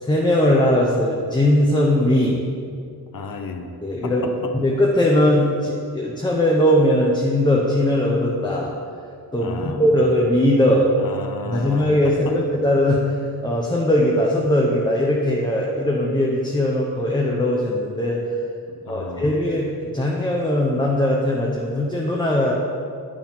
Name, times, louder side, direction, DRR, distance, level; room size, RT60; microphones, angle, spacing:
voice 1, 0.0-2.4 3.8-8.7 9.3-10.9 11.5-13.0 13.4-18.2 18.9-22.5, left 1 dB, 10° left, -2 dB, 0.8 m, -19 dB
voice 2, 3.1-3.7 4.0-4.5 9.4-10.0 11.0-12.4 18.7-19.4, left 4 dB, 60° left, 6 dB, 0.8 m, -33 dB
9.5 x 4.9 x 5.4 m, 2.4 s
wide cardioid pair, 130°, 38 cm